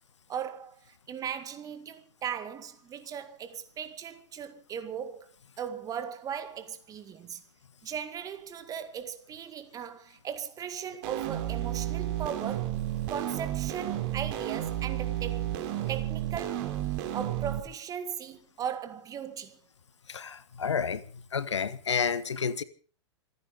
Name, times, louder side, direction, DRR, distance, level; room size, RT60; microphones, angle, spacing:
voice 1, 0.3-5.3 5.6-7.4 7.8-12.8 13.1-15.5 15.9-16.7 17.1-19.6, right 8 dB, 25° right, 2.0 m, -38 dB
sound 1, 11.0-17.6, right 13 dB, 45° right, 3.1 m, -32 dB
voice 2, 20.1-21.0 21.3-22.6, left 6 dB, 70° left, 1.4 m, -30 dB
27.0 x 9.9 x 5.4 m
figure-of-eight pair, 100°, 15 cm